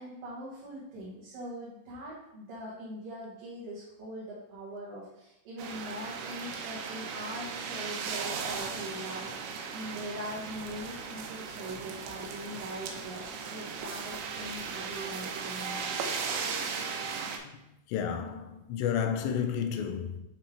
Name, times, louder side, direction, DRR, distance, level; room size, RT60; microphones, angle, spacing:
voice 1, 0.0-15.9, right 1 dB, 65° right, 2.7 m, -42 dB
sound 1, 5.6-17.4, right 5 dB, 85° right, 2.9 m, -37 dB
voice 2, 17.9-20.2, left 8 dB, 85° left, 2.8 m, -32 dB
7.6 x 3.4 x 4.4 m
omnidirectional pair, 4.9 m